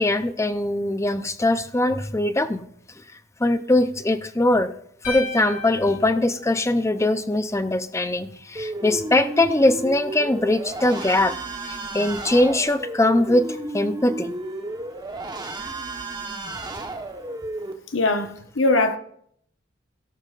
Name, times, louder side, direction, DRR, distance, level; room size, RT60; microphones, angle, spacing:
voice 1, 0.0-2.6 3.4-4.7 5.1-11.4 11.6-14.3, left 1 dB, 15° left, 0.6 m, -21 dB
sound 1, 5.0-7.3, left 3 dB, 45° left, 3.9 m, -35 dB
sound 2, 8.6-17.7, right 2 dB, 25° right, 1.2 m, -33 dB
voice 2, 17.9-19.0, left 2 dB, 90° left, 1.1 m, -21 dB
17.0 x 12.0 x 2.5 m
head